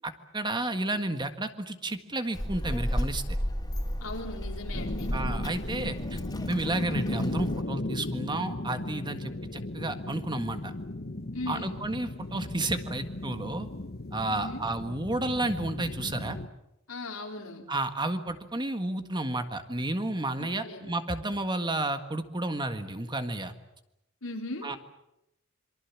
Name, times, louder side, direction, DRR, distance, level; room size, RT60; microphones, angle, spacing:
voice 1, 0.3-3.4 5.1-6.2 6.5-10.7 11.5-13.7 14.1-16.4 17.7-23.5 24.6-24.8, right 2 dB, 20° right, 8 dB, 1.7 m, -32 dB
Child speech kid speaking, 2.3-7.6, equal, 20° left, 3.4 m, -33 dB
voice 2, 4.0-5.1 11.3-11.8 14.3-14.6 16.9-17.6 20.4-20.8 24.2-24.7, left 2 dB, 85° left, 2 dB, 4.2 m, -38 dB
sound 1, 4.7-16.5, left 2 dB, 50° left, 1.2 m, -36 dB
27.0 x 24.0 x 7.3 m, 0.85 s
head